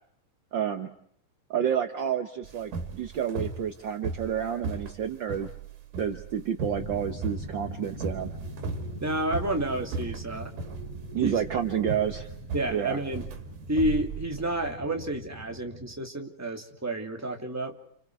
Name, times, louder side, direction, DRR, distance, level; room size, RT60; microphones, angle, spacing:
voice 1, 0.5-0.9 1.5-5.5 6.0-8.3 11.1-12.3 12.7-13.0, right 9 dB, 70° right, 7 dB, 1.1 m, -29 dB
sound 1, 2.4-14.7, right 4 dB, 90° right, 3.9 m, -37 dB
sound 2, 5.9-14.2 15.1-15.3 15.6-16.2, equal, 85° left, 6.4 m, -54 dB
sound 3, 6.7-15.9, right 1 dB, 55° left, 8.6 m, -42 dB
voice 2, 9.0-10.5 11.2-11.4 12.5-13.3 13.7-17.8, right 1 dB, 5° right, 2 dB, 2.2 m, -30 dB
30.0 x 29.5 x 4.8 m, 0.66 s
omnidirectional pair, 3.7 m